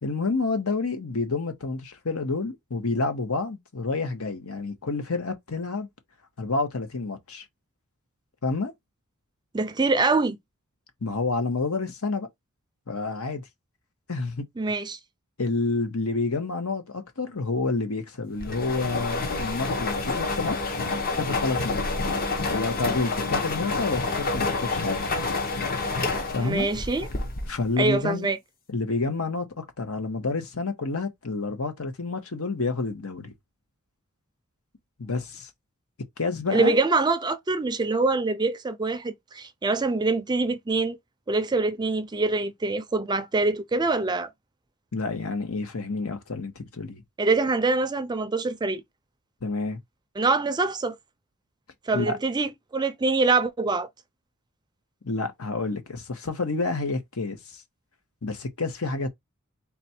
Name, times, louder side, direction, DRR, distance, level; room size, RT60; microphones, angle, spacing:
voice 1, 0.0-5.9 6.4-7.4 8.4-8.7 11.0-12.3 12.9-13.4 14.1-14.4 15.4-20.8 21.2-21.8 22.5-25.1 26.3-26.7 27.5-28.3 28.7-33.3 35.0-35.5 36.2-36.8 44.9-47.0 49.4-49.8 51.9-52.2 55.0-57.6 58.2-59.1, left 3 dB, 75° left, 1.1 m, -29 dB
voice 2, 9.5-10.4 14.6-15.0 26.4-27.1 27.8-28.4 36.5-41.0 41.3-44.3 47.2-48.8 50.2-51.0 51.9-53.9, right 3 dB, 20° right, 0.4 m, -24 dB
sound 1, 18.4-27.7, left 3 dB, 40° left, 0.9 m, -28 dB
4.2 x 2.3 x 4.2 m
head